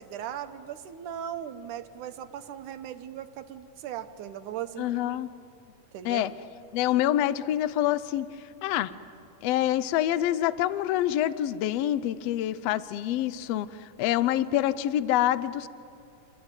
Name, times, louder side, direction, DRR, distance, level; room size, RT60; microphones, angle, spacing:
voice 1, 0.0-5.2 5.9-6.4, right 10 dB, 75° right, 9 dB, 2.4 m, -38 dB
voice 2, 4.8-5.3 6.0-6.3 6.7-8.3 8.6-8.9 9.4-15.7, left 12 dB, 75° left, 15 dB, 1.5 m, -26 dB
28.0 x 23.0 x 9.0 m, 2.7 s
omnidirectional pair, 3.7 m